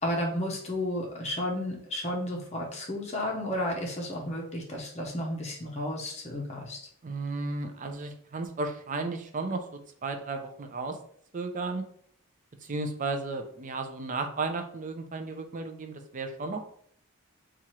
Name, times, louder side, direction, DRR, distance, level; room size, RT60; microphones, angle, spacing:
voice 1, 0.0-6.8, left 1 dB, 30° left, 0 dB, 0.6 m, -32 dB
voice 2, 7.0-9.6 10.0-11.0 11.3-11.8 12.6-16.6, right 3 dB, 35° right, 6 dB, 0.5 m, -34 dB
4.3 x 2.4 x 3.0 m, 0.62 s
head